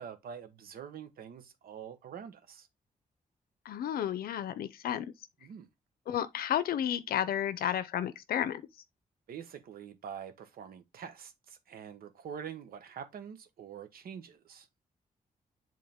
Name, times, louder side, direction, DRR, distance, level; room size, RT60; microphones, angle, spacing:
voice 1, 0.0-2.7 5.4-5.7 9.3-14.7, right 8 dB, 85° right, 1.1 m, -45 dB
voice 2, 3.6-5.1 6.1-8.6, left 10 dB, 85° left, 0.6 m, -32 dB
7.8 x 3.7 x 3.5 m
cardioid pair, 100°, 15 cm